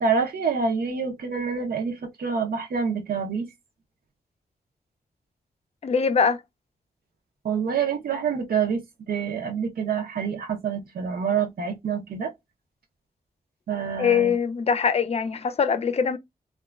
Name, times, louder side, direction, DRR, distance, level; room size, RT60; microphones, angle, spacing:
voice 1, 0.0-3.5 7.4-8.8 9.1-12.3 13.7-14.3, right 6 dB, 70° right, 0.6 m, -27 dB
voice 2, 5.8-6.4 14.0-16.2, left 6 dB, 40° left, 0.4 m, -22 dB
2.8 x 2.2 x 2.3 m
cardioid pair, 50°, 16 cm